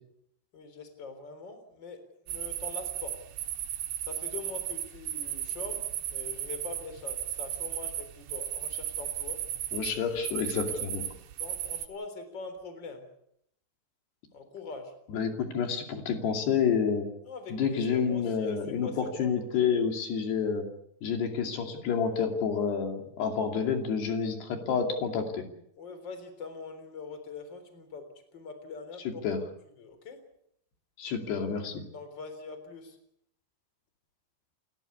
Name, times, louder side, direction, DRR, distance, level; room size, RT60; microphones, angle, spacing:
voice 1, 0.5-3.2 4.0-9.4 10.6-10.8 11.4-13.1 14.3-14.9 17.2-19.4 25.8-28.1 28.3-29.2 29.8-30.2 31.9-33.0, left 4 dB, 30° left, 8 dB, 4.0 m, -43 dB
sound 1, 2.3-11.9, right 12 dB, 85° right, 3.6 m, -35 dB
voice 2, 9.7-11.0 15.1-17.1 17.5-20.7 21.0-25.4 29.2-29.4 31.0-31.8, left 6 dB, 75° left, 4 dB, 4.7 m, -29 dB
29.5 x 15.0 x 8.5 m, 0.76 s
omnidirectional pair, 4.8 m